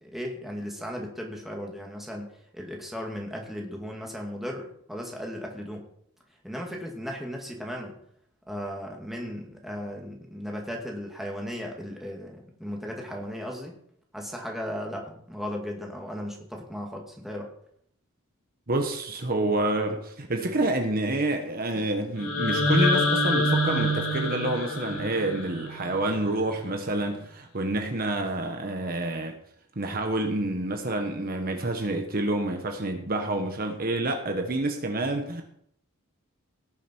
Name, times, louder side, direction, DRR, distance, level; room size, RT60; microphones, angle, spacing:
voice 1, 0.0-5.9 6.4-8.0 8.5-13.7 14.1-17.5, equal, ahead, 0 dB, 2.2 m, -36 dB
voice 2, 18.7-29.3 29.8-35.4, right 2 dB, 45° right, 4 dB, 1.3 m, -28 dB
sound 1, 22.2-26.2, left 1 dB, 80° left, 3.5 m, -26 dB
18.0 x 7.0 x 4.6 m, 0.68 s
head